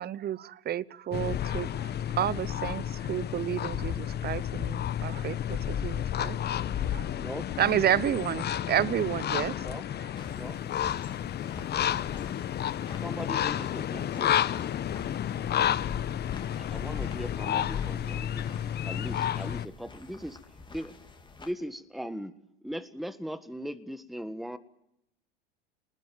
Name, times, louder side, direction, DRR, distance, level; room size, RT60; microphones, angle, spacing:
voice 1, 0.0-1.9 2.2-6.4 6.8-7.1 7.6-9.6, right 11 dB, 30° right, 22 dB, 0.9 m, -30 dB
sound 1, 1.1-19.7, left 10 dB, 35° left, 1.1 m, -31 dB
voice 2, 7.1-7.5 9.5-9.9 10.3-10.6 13.0-14.4 16.6-18.5 18.8-20.4 20.7-21.0 21.4-22.3 22.6-24.6, equal, ahead, 12 dB, 1.6 m, -39 dB
sound 2, 10.1-21.5, left 3 dB, 15° left, 3.7 m, -49 dB
27.5 x 20.5 x 9.3 m, 0.82 s
hypercardioid pair, 90°, 30 cm